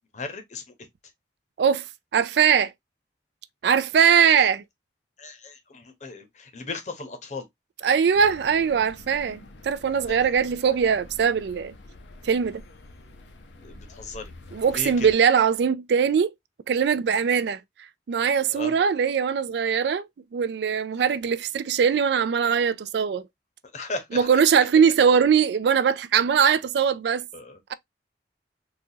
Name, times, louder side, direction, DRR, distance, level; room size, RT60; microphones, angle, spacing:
voice 1, 0.1-0.6 4.2-4.5 5.2-7.4 10.1-10.3 13.6-14.3 14.7-15.1 18.5-18.7 23.7-24.3 27.3-27.7, left 3 dB, 40° left, 0.8 m, -36 dB
voice 2, 2.1-2.7 3.6-4.6 7.8-11.7 12.2-12.6 14.5-16.3 16.7-17.6 18.1-20.1 20.3-23.3 24.1-27.3 27.7-27.8, right 7 dB, 65° right, 0.3 m, -21 dB
sound 1, 8.1-15.1, left 2 dB, 80° left, 0.7 m, -46 dB
4.0 x 2.3 x 2.7 m
head